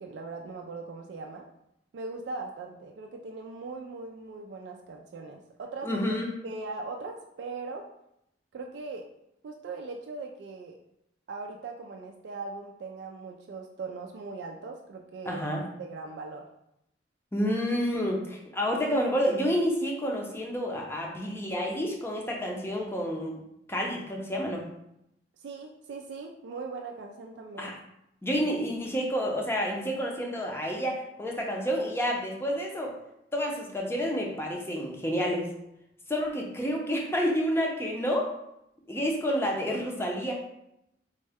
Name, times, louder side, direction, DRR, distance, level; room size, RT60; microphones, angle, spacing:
voice 1, 0.0-1.5 1.9-6.0 6.4-7.8 8.5-9.1 9.4-10.8 11.3-16.4 25.4-27.7, right 3 dB, 75° right, 2 dB, 0.3 m, -40 dB
voice 2, 5.8-6.3 15.2-15.6 17.3-23.4 23.7-24.6 27.6-27.7 28.2-32.9 33.3-35.5 36.1-38.3 38.9-40.4, equal, 15° left, -1 dB, 0.5 m, -29 dB
3.6 x 2.1 x 3.4 m, 0.81 s
head